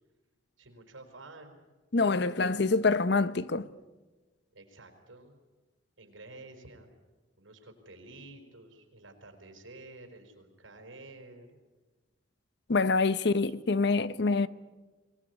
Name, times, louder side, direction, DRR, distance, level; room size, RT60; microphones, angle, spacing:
voice 1, 0.6-1.6 2.4-2.8 4.5-5.4 6.0-6.9 7.4-11.6 13.2-13.6, right 2 dB, 85° right, 4.8 m, -51 dB
voice 2, 1.9-3.7 12.7-14.5, left 3 dB, 60° left, 0.7 m, -26 dB
25.0 x 19.0 x 9.7 m
head